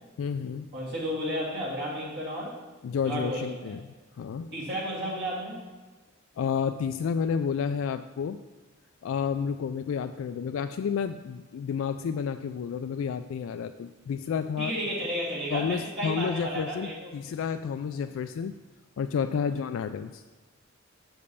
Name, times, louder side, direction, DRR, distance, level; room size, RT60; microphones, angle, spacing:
voice 1, 0.2-0.7 2.8-4.5 6.4-8.4 9.0-15.0 15.5-18.6 19.0-20.2, left 6 dB, 70° left, 8 dB, 0.3 m, -31 dB
voice 2, 0.7-2.6 3.0-3.7 4.5-5.6 14.6-17.1, equal, 55° right, -6 dB, 2.3 m, -32 dB
6.9 x 5.2 x 6.8 m, 1.3 s
head